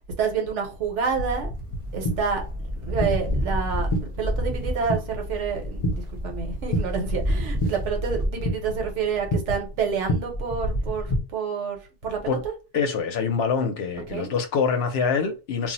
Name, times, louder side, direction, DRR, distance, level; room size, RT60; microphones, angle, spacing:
voice 1, 0.2-1.5 1.9-2.4 2.7-11.1 11.3-12.5 14.1-14.3, right 6 dB, 80° right, 1.1 m, -28 dB
sound 1, 0.8-8.3, equal, 35° right, 0.5 m, -30 dB
sound 2, 1.4-11.2, equal, 45° left, 0.4 m, -30 dB
voice 2, 12.7-15.7, left 5 dB, 65° left, 0.8 m, -25 dB
2.4 x 2.0 x 3.8 m
omnidirectional pair, 1.2 m